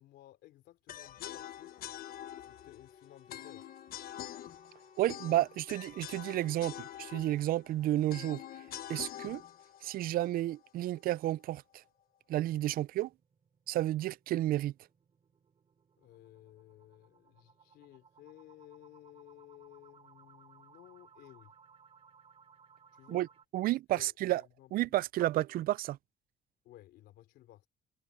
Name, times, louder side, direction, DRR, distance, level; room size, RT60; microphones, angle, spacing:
voice 1, 0.0-1.9 2.4-3.6 16.0-21.5 22.9-23.3 23.9-24.9 26.6-27.7, left 14 dB, 80° left, 3.2 m, -56 dB
sound 1, 0.9-11.0, left 11 dB, 60° left, 1.3 m, -46 dB
Wind instrument woodwind instrument, 1.4-7.1, left 6 dB, 45° left, 2.0 m, -60 dB
sound 2, 3.8-5.3 5.7-5.8 6.2-6.3 6.7-6.8 11.6-23.4, right 6 dB, 35° right, 3.0 m, -63 dB
voice 2, 5.0-8.4 8.9-9.4 9.8-11.8 12.3-13.1 13.7-14.7 23.1-23.3 23.5-24.4 24.7-26.0, right 15 dB, 60° right, 0.4 m, -31 dB
cardioid pair, 110°, 17 cm